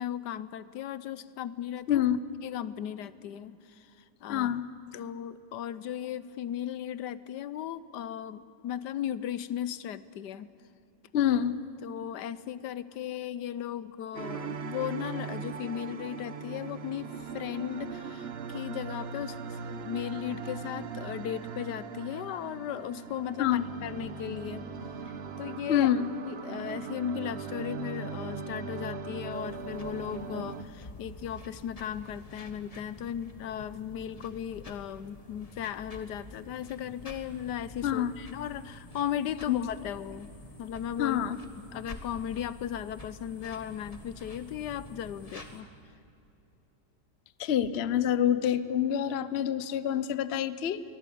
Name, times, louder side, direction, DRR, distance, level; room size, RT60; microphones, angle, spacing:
voice 1, 0.0-2.0 2.4-3.9 4.2-4.5 4.9-10.5 11.8-24.6 25.4-25.9 26.3-40.3 40.6-41.2 41.6-45.7, left 10 dB, 75° left, 16 dB, 1.3 m, -36 dB
voice 2, 1.9-2.2 4.3-4.6 11.1-11.6 23.4-23.6 25.7-26.1 37.8-38.2 39.5-39.6 41.0-41.4 47.4-50.8, left 10 dB, 50° left, 14 dB, 0.7 m, -27 dB
sound 1, 14.1-30.6, right 5 dB, 45° right, 0.9 m, -39 dB
sound 2, 29.3-45.6, left 1 dB, 20° left, 1.6 m, -48 dB
23.5 x 18.0 x 8.5 m, 2.7 s
omnidirectional pair, 1.9 m